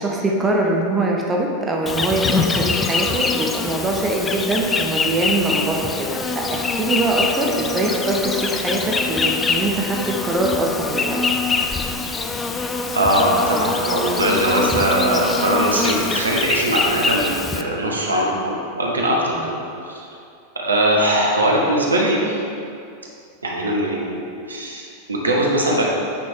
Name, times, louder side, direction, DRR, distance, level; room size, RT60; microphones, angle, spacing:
voice 1, 0.0-11.2 19.4-19.5, right 2 dB, 20° right, -1 dB, 0.8 m, -23 dB
Insect, 1.9-17.6, left 4 dB, 15° left, 0.4 m, -24 dB
voice 2, 12.9-20.1 20.5-22.4 23.4-24.2 24.5-25.8, right 1 dB, 75° right, -2 dB, 1.1 m, -20 dB
8.7 x 5.2 x 3.6 m, 2.5 s
figure-of-eight pair, 90°, 0 cm